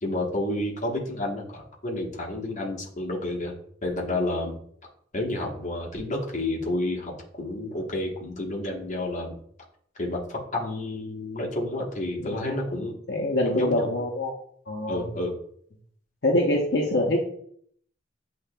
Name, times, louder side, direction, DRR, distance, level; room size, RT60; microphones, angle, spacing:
voice 1, 0.0-3.5 3.8-4.6 5.1-9.4 10.0-12.9 13.4-13.9 14.9-15.3, left 1 dB, 40° left, -1 dB, 1.0 m, -30 dB
voice 2, 12.2-14.3 14.7-15.1 16.2-17.2, left 1 dB, 60° left, -1 dB, 0.7 m, -25 dB
8.2 x 2.8 x 2.2 m, 0.64 s
head